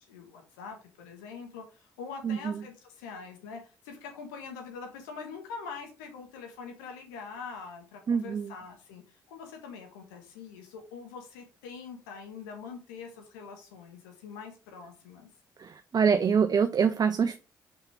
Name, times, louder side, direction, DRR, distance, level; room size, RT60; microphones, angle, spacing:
voice 1, 0.1-15.3, left 5 dB, 80° left, 3 dB, 1.4 m, -44 dB
voice 2, 2.2-2.6 8.1-8.5 15.6-17.4, right 6 dB, 40° right, 9 dB, 0.5 m, -25 dB
5.5 x 5.2 x 3.5 m, 0.33 s
figure-of-eight pair, 40°, 10 cm